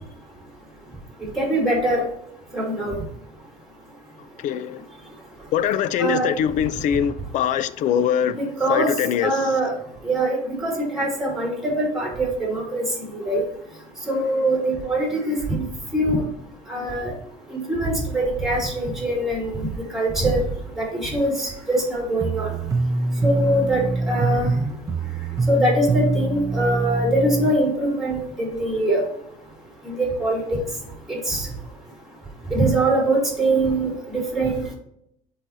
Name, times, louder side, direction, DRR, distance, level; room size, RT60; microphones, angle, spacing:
voice 1, 1.4-2.0 2.5-3.0 6.0-6.3 8.4-8.9 9.2-9.7 10.0-12.8 13.1-13.4 14.1-15.6 15.9-16.2 16.7-17.1 17.5-19.7 19.9-20.4 20.8-22.5 23.2-24.5 25.5-29.0 29.9-30.6 31.3-31.5 32.5-34.6, right 1 dB, ahead, 2.7 m, -23 dB
voice 2, 4.4-4.8 5.5-8.4 8.7-9.3, left 9 dB, 60° left, 0.5 m, -22 dB
sound 1, 22.2-27.5, right 2 dB, 20° right, 0.5 m, -24 dB
10.0 x 4.1 x 2.6 m
cardioid pair, 150°, 14 cm